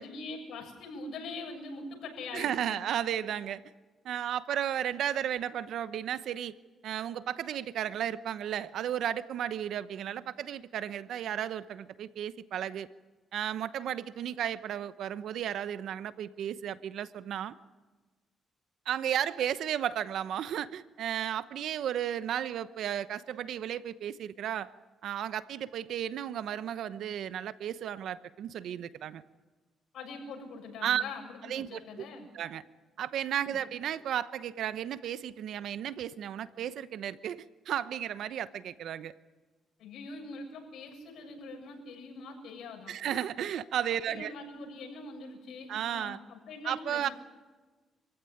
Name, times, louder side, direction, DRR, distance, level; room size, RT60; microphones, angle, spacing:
voice 1, 0.0-2.8 29.9-32.3 33.4-33.6 39.8-43.0 44.1-47.1, left 3 dB, 70° left, 0 dB, 7.4 m, -43 dB
voice 2, 2.3-3.6 4.0-6.5 6.8-12.9 13.3-17.5 18.9-24.7 25.0-29.2 30.8-31.0 31.5-32.0 32.3-32.6 33.0-39.1 42.9-44.3 45.7-46.2 46.6-47.1, right 10 dB, 75° right, 14 dB, 0.9 m, -34 dB
26.0 x 16.0 x 10.0 m, 1.3 s
cardioid pair, 90°, 0 cm